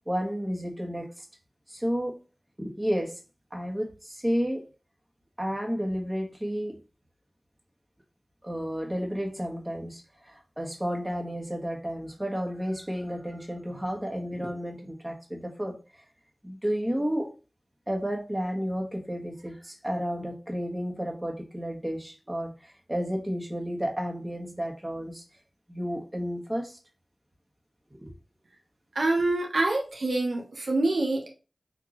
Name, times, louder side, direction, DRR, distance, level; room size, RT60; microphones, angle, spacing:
voice 1, 0.1-1.3 1.7-2.1 2.6-3.2 3.5-4.7 5.4-6.8 8.4-16.0 16.4-17.3 17.9-25.2 25.7-26.8 27.9-28.1, equal, 15° right, 1.3 m, -32 dB
voice 2, 28.9-31.3, right 2 dB, 85° right, 0.8 m, -26 dB
6.3 x 2.8 x 2.9 m
wide cardioid pair, 50°, 0 cm